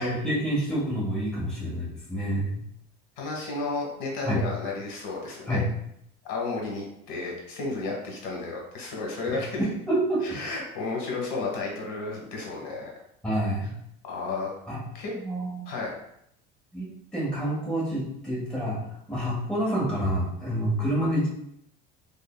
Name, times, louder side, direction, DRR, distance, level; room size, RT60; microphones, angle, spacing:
voice 1, 0.0-2.6 4.2-4.4 5.5-5.7 9.3-10.2 13.2-13.7 14.7-14.8 15.2-15.6 16.7-16.9 17.1-18.8 19.1-21.3, equal, 5° left, -8 dB, 1.3 m, -28 dB
voice 2, 3.2-5.6 6.2-9.7 10.2-12.9 14.0-14.5 14.9-15.1 15.7-15.9, left 3 dB, 75° left, -1 dB, 1.1 m, -32 dB
3.6 x 3.5 x 2.2 m, 0.74 s
cardioid pair, 155°, 21 cm